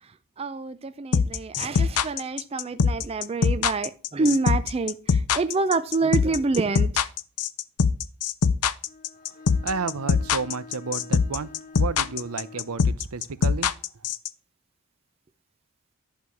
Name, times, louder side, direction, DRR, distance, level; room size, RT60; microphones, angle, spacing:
voice 1, 0.4-5.0 5.3-6.9, right 3 dB, 25° right, 0.4 m, -26 dB
sound 1, 1.1-14.3, left 5 dB, 85° left, 0.6 m, -22 dB
Bowed string instrument, 8.9-12.8, left 4 dB, 40° left, 1.0 m, -46 dB
voice 2, 9.6-13.7, right 4 dB, 75° right, 0.7 m, -32 dB
11.0 x 4.8 x 7.0 m
head